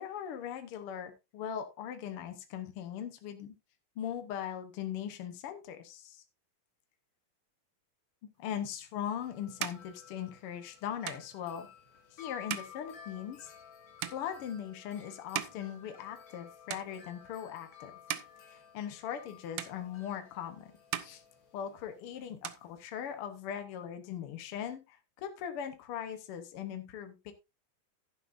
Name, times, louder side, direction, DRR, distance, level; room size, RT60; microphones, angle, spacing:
voice 1, 0.0-3.5 4.0-6.2 8.4-11.7 12.1-13.5 14.1-18.0 18.5-20.7 21.0-21.2 21.5-27.3, left 9 dB, 70° left, 8 dB, 1.3 m, -40 dB
sound 1, 8.7-16.4 16.7-17.4 17.8-19.3 19.6-20.4 20.7-22.0 22.2-23.4, right 12 dB, 90° right, 1.4 m, -42 dB
Wind chime, 9.0-22.3, left 8 dB, 90° left, 0.8 m, -55 dB
11.5 x 10.5 x 2.5 m, 0.25 s
omnidirectional pair, 3.8 m